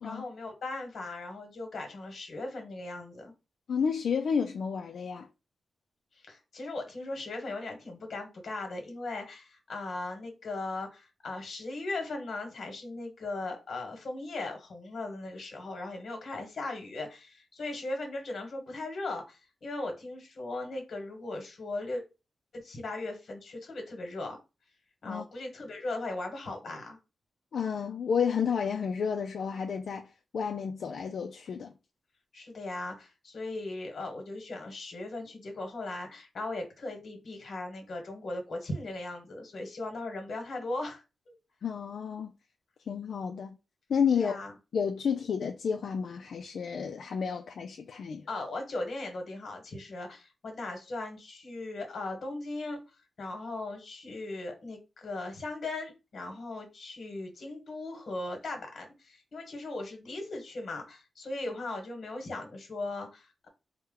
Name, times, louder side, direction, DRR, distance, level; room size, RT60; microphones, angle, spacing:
voice 1, 0.0-3.3 6.1-22.0 22.5-24.4 25.0-27.0 32.3-41.3 44.1-44.5 48.3-52.8 53.2-63.5, left 2 dB, 50° left, 1.3 m, -38 dB
voice 2, 3.7-5.3 25.1-25.2 27.5-31.7 41.6-42.3 42.9-43.6 43.9-44.4 44.7-48.3, left 6 dB, 70° left, 0.3 m, -31 dB
4.2 x 2.1 x 3.7 m
wide cardioid pair, 180°, 0 cm